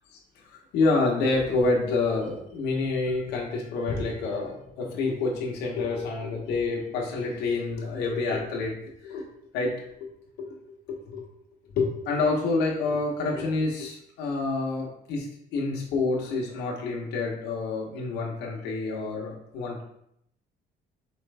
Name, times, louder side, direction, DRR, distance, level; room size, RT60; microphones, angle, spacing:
voice 1, 0.1-9.2 9.5-9.7 10.0-10.1 10.4-10.6 10.9-11.2 11.8-19.8, left 3 dB, 85° left, -2 dB, 1.1 m, -28 dB
4.4 x 3.1 x 3.3 m, 0.74 s
cardioid pair, 110°, 17 cm